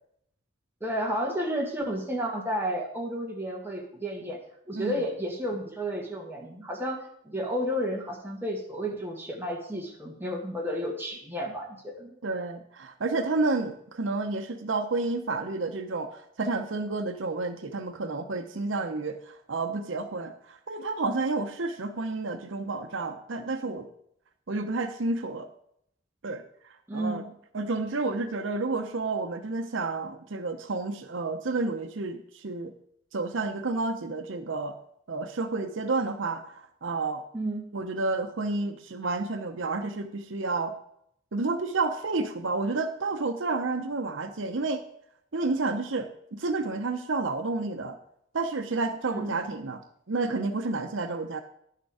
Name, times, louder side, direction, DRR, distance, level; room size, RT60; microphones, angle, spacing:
voice 1, 0.8-4.4 4.7-12.2 26.9-27.3 37.3-37.7 49.1-49.4, equal, 10° right, -1 dB, 1.7 m, -32 dB
voice 2, 12.2-23.9 24.5-25.5 26.2-26.4 26.9-27.2 27.5-32.7 33.1-34.8 35.1-37.3 37.7-40.8 41.3-44.8 45.3-48.0 48.3-49.8 50.1-51.4, right 3 dB, 75° right, 7 dB, 0.8 m, -30 dB
10.5 x 6.7 x 4.8 m, 0.71 s
head